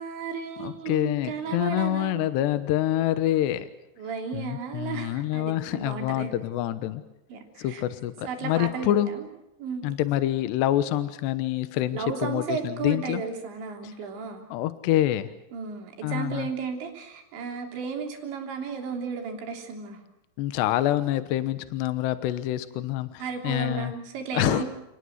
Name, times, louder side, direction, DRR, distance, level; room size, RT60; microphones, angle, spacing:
voice 1, 0.0-2.3 4.0-6.3 7.3-7.8 8.2-9.3 9.6-9.9 11.9-14.5 15.5-20.0 23.2-24.7, right 5 dB, 75° right, 2 dB, 5.6 m, -34 dB
voice 2, 0.6-3.7 4.3-7.0 7.6-9.1 9.8-13.2 14.5-15.3 16.0-16.5 20.4-23.9 24.3-24.6, left 13 dB, 75° left, 12 dB, 3.0 m, -26 dB
30.0 x 19.5 x 8.0 m, 0.90 s
omnidirectional pair, 5.3 m